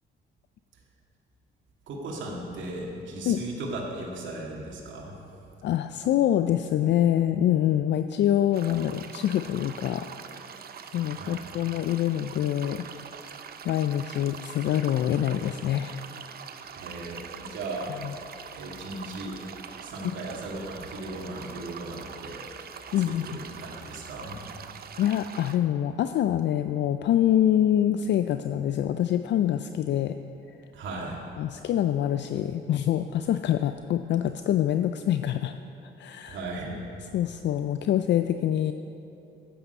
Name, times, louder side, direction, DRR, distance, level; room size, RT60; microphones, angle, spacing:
voice 1, 1.9-5.2 11.2-11.4 16.7-17.9 18.5-19.4 19.8-22.4 23.3-24.4 30.7-31.2 36.3-36.8, right 2 dB, 75° right, -2 dB, 2.1 m, -36 dB
voice 2, 5.6-10.1 10.9-12.8 13.6-16.0 18.0-18.1 20.0-20.1 22.9-23.4 25.0-30.2 31.4-35.5 36.0-36.4 37.1-38.7, left 11 dB, 65° left, 9 dB, 0.4 m, -25 dB
sound 1, 8.5-25.6, right 7 dB, 50° right, 0.7 m, -43 dB
12.5 x 8.6 x 5.3 m, 2.8 s
cardioid pair, 90°, 20 cm